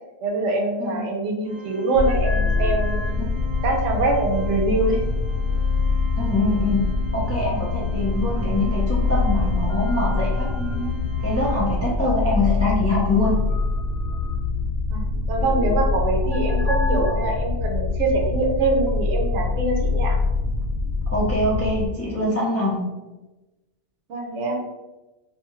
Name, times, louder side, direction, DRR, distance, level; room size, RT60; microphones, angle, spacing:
voice 1, 0.2-3.0 3.6-5.0 14.9-20.2 24.1-24.6, right 2 dB, 85° right, 1 dB, 0.9 m, -24 dB
Organ, 1.4-12.2, left 2 dB, 60° right, 1.2 m, -40 dB
sound 1, 1.9-21.9, left 3 dB, 70° left, 0.8 m, -24 dB
voice 2, 6.2-6.8 7.1-10.9 11.2-13.4 21.1-22.8, left 2 dB, 20° left, -6 dB, 0.4 m, -24 dB
2.7 x 2.2 x 3.0 m, 1.1 s
omnidirectional pair, 1.2 m